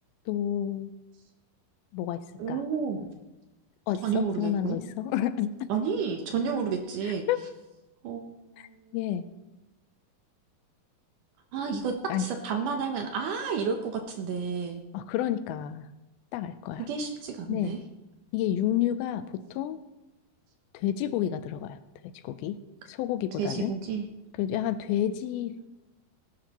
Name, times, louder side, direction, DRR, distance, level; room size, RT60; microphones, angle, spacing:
voice 1, 0.3-0.9 1.9-2.2 2.5-2.6 3.9-5.7 7.3-7.4 8.6-8.7 8.9-9.3 12.1-12.3 14.9-15.9 16.3-16.9 17.5-17.7 18.3-19.8 20.7-21.8 22.2-22.6 22.9-23.7 24.4-25.7, left 11 dB, 85° left, 13 dB, 2.4 m, -30 dB
voice 2, 2.4-3.1 4.0-4.8 5.7-7.3 8.0-8.6 11.5-14.8 16.9-17.8 23.4-24.1, right 6 dB, 70° right, 4 dB, 2.1 m, -31 dB
17.5 x 11.0 x 3.0 m, 1.0 s
omnidirectional pair, 4.4 m